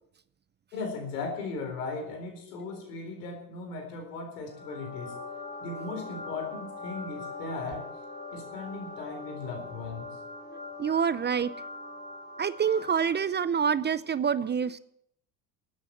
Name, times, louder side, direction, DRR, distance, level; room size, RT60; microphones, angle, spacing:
voice 1, 0.7-5.2 5.6-7.9 8.3-10.1, left 3 dB, 85° left, 4 dB, 4.2 m, -37 dB
sound 1, 4.5-13.3, left 3 dB, 20° left, 3.3 m, -42 dB
voice 2, 10.8-11.5 12.4-14.8, right 7 dB, 25° right, 16 dB, 0.5 m, -26 dB
13.0 x 8.7 x 7.7 m, 0.74 s
hypercardioid pair, 80°, 46 cm